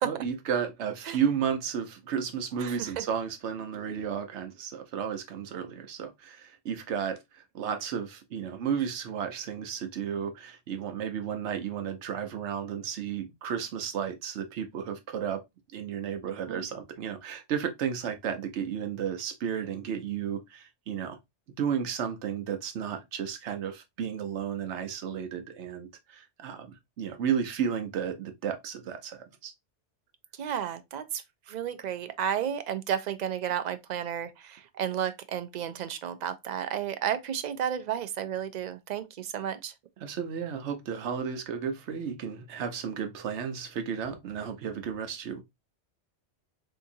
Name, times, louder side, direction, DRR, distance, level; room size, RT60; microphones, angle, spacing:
voice 1, 0.0-15.4 15.7-21.2 21.6-29.5 40.0-45.4, right 7 dB, 80° right, 1.0 m, -33 dB
voice 2, 2.6-3.0 16.3-16.7 30.4-31.2 31.5-39.7, right 9 dB, 60° right, 0.5 m, -32 dB
3.5 x 2.8 x 2.6 m
omnidirectional pair, 1.2 m